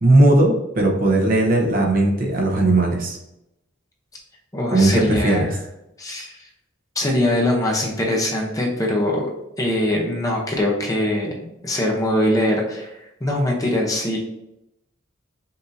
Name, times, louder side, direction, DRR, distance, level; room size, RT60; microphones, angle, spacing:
voice 1, 0.0-3.2 4.7-5.5, right 2 dB, 45° right, 0 dB, 0.8 m, -17 dB
voice 2, 4.5-5.6 6.0-6.5 7.0-9.3 9.6-14.2, left 1 dB, 15° left, -2 dB, 0.7 m, -22 dB
5.4 x 2.7 x 2.7 m, 0.85 s
head